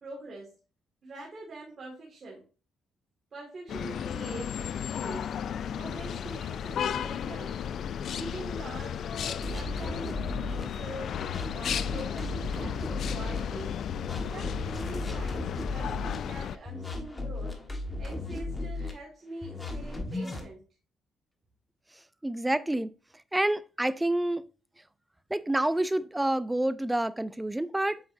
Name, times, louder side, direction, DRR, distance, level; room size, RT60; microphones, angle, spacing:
voice 1, 0.0-0.5 1.0-2.4 3.3-5.4 5.7-7.7 8.1-11.2 11.5-13.8 14.1-17.6 18.0-20.6, right 2 dB, 40° right, 2.0 m, -44 dB
sound 1, 3.7-16.6, left 8 dB, 65° left, 0.3 m, -34 dB
sound 2, 9.4-10.6 11.1-13.4 13.9-16.2 16.6-18.9 19.4-20.4, left 2 dB, 20° left, 1.5 m, -35 dB
voice 2, 22.2-22.9 23.3-24.5 25.3-28.0, right 1 dB, 10° right, 0.4 m, -28 dB
8.0 x 4.8 x 2.6 m
cardioid pair, 90°, 0 cm